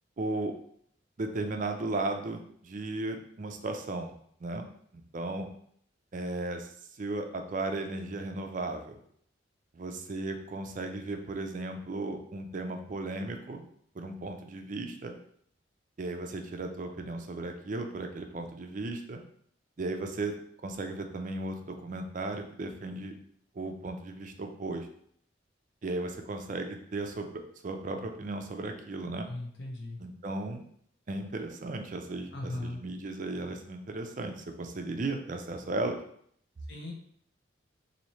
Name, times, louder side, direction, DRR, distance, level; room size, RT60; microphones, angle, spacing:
voice 1, 0.2-0.5 1.2-4.1 4.4-4.7 4.9-5.5 6.1-9.0 9.7-13.6 13.9-15.2 16.0-19.2 19.8-20.4 20.6-23.1 23.5-24.9 25.8-29.3 30.0-30.6 31.1-36.0, right 2 dB, 45° right, 5 dB, 0.4 m, -35 dB
voice 2, 29.3-30.0 32.3-32.8 36.7-36.9, left 1 dB, 65° left, -1 dB, 1.0 m, -38 dB
3.1 x 2.7 x 4.1 m, 0.64 s
head